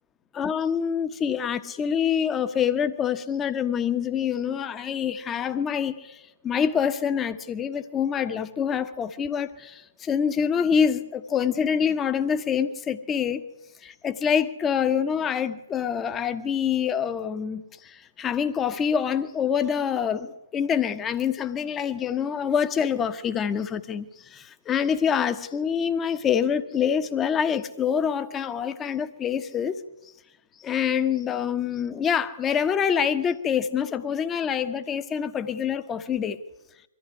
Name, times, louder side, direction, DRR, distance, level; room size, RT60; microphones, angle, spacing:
voice 1, 0.3-13.4 13.8-29.8 30.6-36.4, left 7 dB, 15° left, 11 dB, 1.2 m, -26 dB
24.0 x 14.5 x 9.8 m, 0.97 s
figure-of-eight pair, 120°, 0 cm